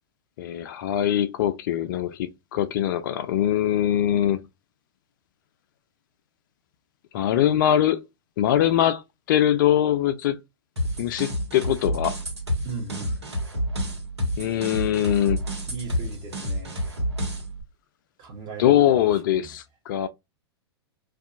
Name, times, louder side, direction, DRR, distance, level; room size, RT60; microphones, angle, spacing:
voice 1, 0.4-4.4 7.1-8.0 8.4-9.0 9.3-10.4 11.0-12.2 14.4-15.4 18.6-20.1, left 11 dB, 50° left, 0.4 m, -22 dB
sound 1, 10.8-17.6, equal, 80° right, 1.3 m, -29 dB
voice 2, 12.6-13.1 15.7-17.0 18.2-19.0 19.3-19.5, right 4 dB, 30° right, 1.1 m, -37 dB
2.6 x 2.3 x 2.6 m
figure-of-eight pair, 100°, 14 cm